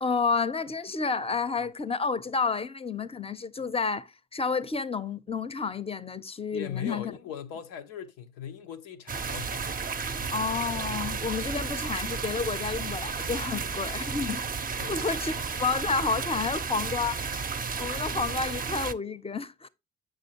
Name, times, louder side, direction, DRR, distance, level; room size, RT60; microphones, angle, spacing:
voice 1, 0.0-7.1 10.3-14.4 14.9-17.4 17.8-19.7, left 4 dB, 20° left, 0.6 m, -30 dB
voice 2, 6.5-9.6 10.2-10.4 14.8-15.1, left 8 dB, 90° left, 0.6 m, -39 dB
sound 1, 9.1-18.9, right 5 dB, 30° right, 0.6 m, -33 dB
6.4 x 6.3 x 2.9 m
hypercardioid pair, 40°, 31 cm